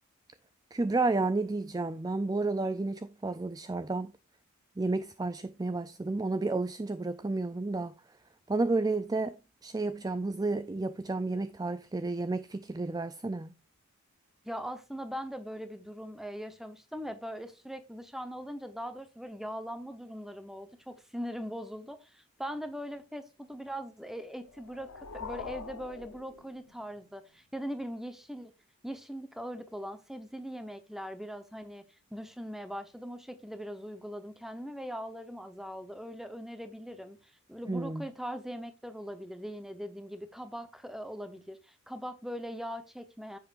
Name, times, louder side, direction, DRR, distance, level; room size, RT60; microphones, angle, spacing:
voice 1, 0.7-4.1 4.8-7.9 8.5-9.3 9.6-13.5 37.7-38.1, right 3 dB, 15° right, 0.4 m, -31 dB
voice 2, 14.4-28.5 28.8-31.8 32.1-37.2 37.5-43.4, equal, ahead, 0.9 m, -40 dB
sound 1, 24.4-27.0, left 5 dB, 85° left, 0.9 m, -44 dB
10.0 x 7.6 x 2.6 m
head